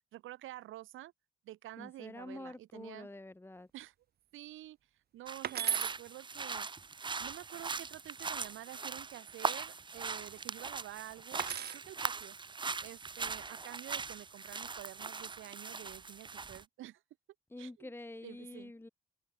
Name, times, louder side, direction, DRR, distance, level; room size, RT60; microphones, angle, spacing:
voice 1, 0.1-1.1 1.5-3.1 3.7-3.9 4.3-4.8 5.1-6.7 7.2-11.4 11.7-12.4 12.8-17.0 17.6-17.9 18.2-18.7, right 14 dB, 85° right, 2.2 m, -49 dB
voice 2, 1.8-3.7 17.5-18.9, left 2 dB, 10° left, 1.9 m, -47 dB
sound 1, 5.3-16.6, right 4 dB, 25° right, 0.8 m, -40 dB
sound 2, 5.4-6.0 8.2-8.8 11.3-11.9 13.2-13.6, right 9 dB, 55° right, 1.2 m, -36 dB
cardioid pair, 90°, 20 cm